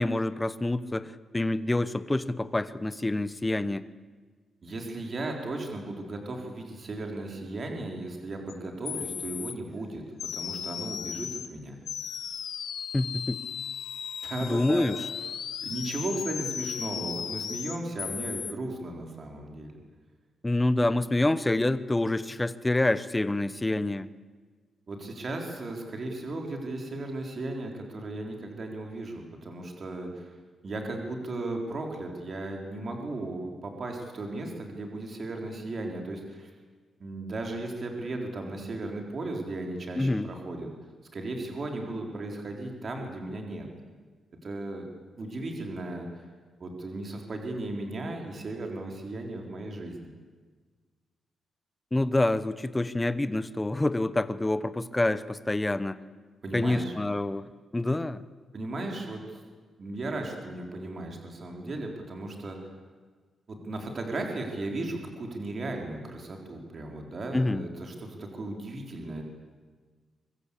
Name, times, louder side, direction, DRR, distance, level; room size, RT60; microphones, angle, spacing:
voice 1, 0.0-3.9 12.9-13.4 14.4-15.0 20.4-24.1 40.0-40.3 51.9-56.0 56.5-58.2 67.3-67.7, left 2 dB, 10° left, 14 dB, 0.8 m, -27 dB
voice 2, 4.6-10.0 10.3-11.8 14.2-14.9 15.6-19.8 24.9-30.3 30.6-36.5 37.0-40.7 41.1-43.7 44.4-44.9 45.2-46.1 46.6-50.1 56.4-56.9 58.5-59.4 59.8-62.7 63.5-69.2, right 2 dB, 35° right, 2 dB, 3.8 m, -36 dB
sound 1, 8.5-8.6 8.8-9.5 10.2-11.5 11.9-18.5, left 8 dB, 65° left, 1.5 m, -36 dB
24.5 x 24.0 x 8.3 m, 1.4 s
wide cardioid pair, 175°, 0 cm